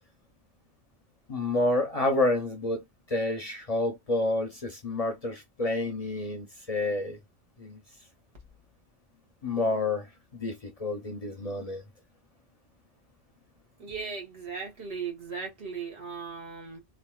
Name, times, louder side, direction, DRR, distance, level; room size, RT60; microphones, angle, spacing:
voice 1, 1.3-2.8 3.1-7.2 7.6-7.8 9.4-10.1 10.3-11.8, left 2 dB, 45° left, 0.6 m, -29 dB
voice 2, 13.8-16.8, right 5 dB, 75° right, 1.4 m, -37 dB
3.3 x 2.5 x 2.2 m
omnidirectional pair, 1.1 m